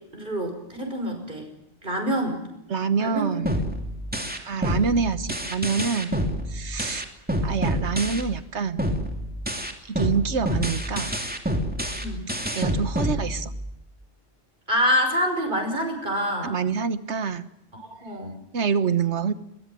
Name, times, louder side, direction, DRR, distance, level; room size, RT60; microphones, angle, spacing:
voice 1, 0.1-1.5 1.8-2.5 3.0-3.5 4.1-4.3 12.0-12.3 14.7-16.6 17.7-18.3, equal, 45° right, 3 dB, 5.8 m, -26 dB
voice 2, 2.7-3.5 4.4-6.2 6.5-7.0 7.4-8.9 9.9-11.1 12.5-13.5 16.4-17.5 18.5-19.3, right 6 dB, 75° right, 12 dB, 1.6 m, -26 dB
sound 1, 3.5-8.5 8.8-13.8, equal, 5° right, 2.6 m, -28 dB
22.0 x 20.0 x 9.2 m, 0.85 s
omnidirectional pair, 1.2 m